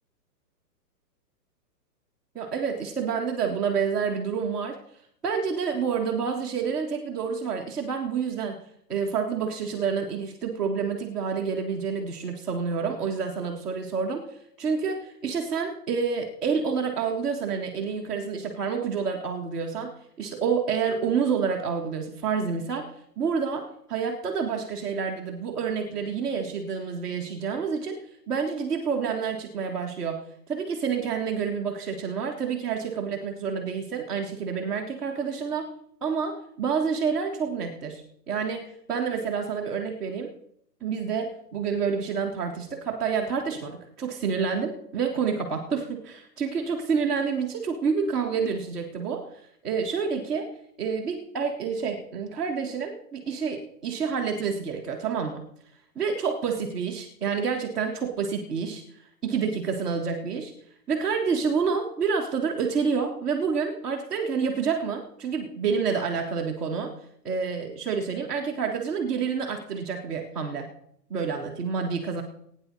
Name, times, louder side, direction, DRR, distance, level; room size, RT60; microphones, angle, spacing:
voice 1, 2.3-4.8 5.2-8.6 8.9-14.3 14.6-19.9 20.2-22.9 23.2-28.0 28.3-30.2 30.5-35.7 36.0-38.0 38.3-40.3 40.8-50.5 50.8-55.4 55.9-60.5 60.9-66.9 67.2-70.7 71.1-72.2, right 6 dB, ahead, -11 dB, 0.5 m, -28 dB
21.0 x 9.6 x 4.2 m, 0.69 s
hypercardioid pair, 150°, 50 cm